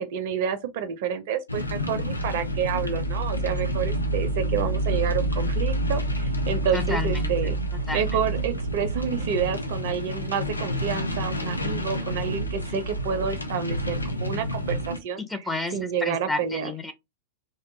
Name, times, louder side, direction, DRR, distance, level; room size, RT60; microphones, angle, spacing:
voice 1, 0.0-7.6 7.9-15.2 15.7-16.7, right 7 dB, 50° right, 0.4 m, -29 dB
sound 1, 1.5-15.0, right 1 dB, 80° left, 0.5 m, -28 dB
voice 2, 6.7-7.3 7.9-8.3 15.3-16.9, left 2 dB, 10° left, 0.6 m, -31 dB
2.5 x 2.2 x 2.7 m
figure-of-eight pair, 90°, 0 cm